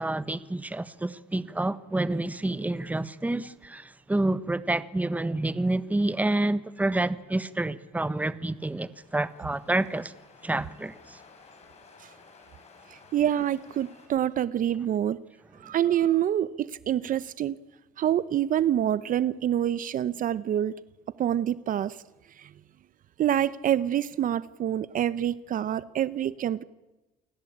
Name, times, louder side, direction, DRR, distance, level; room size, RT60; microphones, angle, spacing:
voice 1, 0.0-10.1 10.4-11.2, right 2 dB, 10° right, 1.3 m, -28 dB
sound 1, 8.4-14.1, left 4 dB, 40° left, 6.8 m, -55 dB
voice 2, 12.9-15.2 15.6-17.6 18.0-20.7 21.2-22.0 22.4-22.5 23.2-26.6, right 11 dB, 55° right, 0.8 m, -26 dB
29.0 x 19.5 x 8.7 m
cardioid pair, 110°, 17 cm